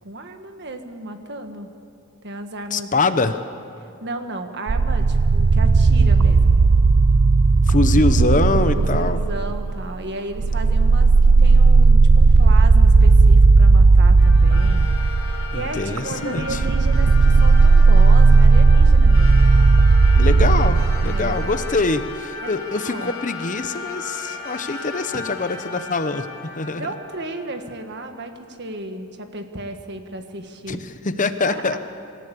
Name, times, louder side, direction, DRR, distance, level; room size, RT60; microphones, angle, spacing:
voice 1, 0.0-1.7 2.2-3.2 4.0-6.6 8.7-14.9 15.3-19.5 21.0-21.4 22.4-23.1 25.1-25.2 26.7-30.8 31.4-31.8, right 2 dB, 50° right, 6 dB, 1.6 m, -34 dB
voice 2, 2.7-3.4 7.7-9.2 15.5-16.6 20.1-26.3 26.6-26.9 30.7-30.8 31.0-31.8, left 3 dB, 35° left, 10 dB, 0.9 m, -23 dB
sound 1, 4.7-9.9 10.3-21.9, right 3 dB, 80° right, 0.6 m, -14 dB
sound 2, 14.2-27.9, left 4 dB, 75° left, 3.2 m, -35 dB
26.0 x 14.5 x 8.5 m, 2.6 s
head